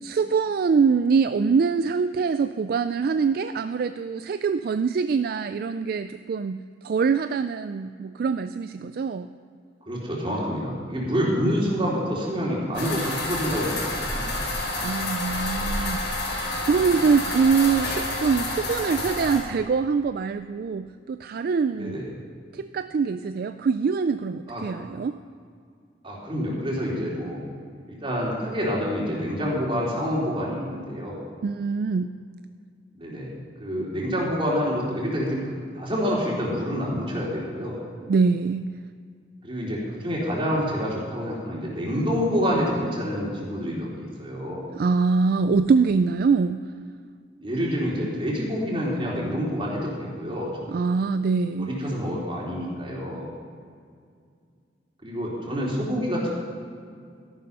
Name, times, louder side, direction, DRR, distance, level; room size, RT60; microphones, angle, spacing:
voice 1, 0.0-9.3 14.8-22.0 22.5-25.1 31.4-32.1 38.1-38.6 44.7-46.6 50.7-51.7, right 5 dB, 55° right, 11 dB, 0.3 m, -24 dB
voice 2, 9.9-14.3 21.8-22.1 24.5-24.7 26.0-27.4 27.9-31.2 33.0-33.3 33.6-37.8 39.4-44.7 47.4-50.8 51.6-53.3 55.0-56.3, equal, 30° right, -4 dB, 3.7 m, -27 dB
sound 1, 12.7-19.4, left 2 dB, 85° left, 4.1 m, -29 dB
13.5 x 11.0 x 5.5 m, 2.2 s
head